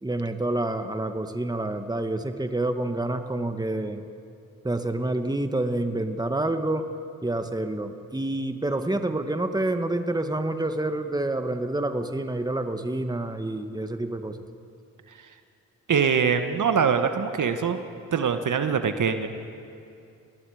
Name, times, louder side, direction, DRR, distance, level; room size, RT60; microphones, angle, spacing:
voice 1, 0.0-4.1 4.6-6.9 7.2-14.4, right 2 dB, 10° right, 7 dB, 1.8 m, -28 dB
voice 2, 15.9-17.8 18.1-19.3, right 6 dB, 50° right, 8 dB, 1.7 m, -23 dB
29.5 x 19.5 x 5.1 m, 2.6 s
hypercardioid pair, 45°, 39 cm